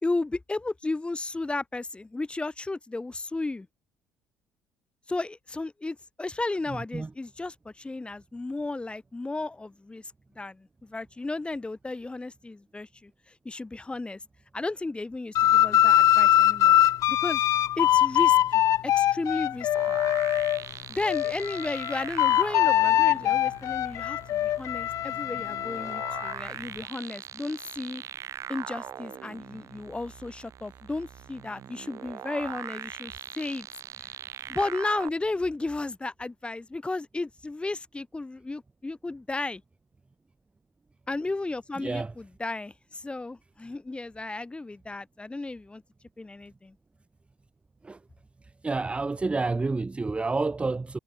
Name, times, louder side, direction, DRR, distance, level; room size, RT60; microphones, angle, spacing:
voice 1, 0.0-3.7 5.1-13.1 13.4-14.2 14.5-16.7 17.1-17.4 17.8-20.0 20.9-28.0 28.5-33.7 34.5-39.6 41.1-45.8 46.2-46.8, left 2 dB, 15° left, 3.9 m, -34 dB
sound 1, 15.3-20.6 21.0-26.3, left 12 dB, 60° left, 0.4 m, -23 dB
sound 2, 19.7-35.1, right 9 dB, 55° right, 5.6 m, -41 dB
voice 2, 41.8-42.1 47.8-48.0 48.6-51.0, right 3 dB, 20° right, 0.7 m, -29 dB
supercardioid pair, 80°, 6 cm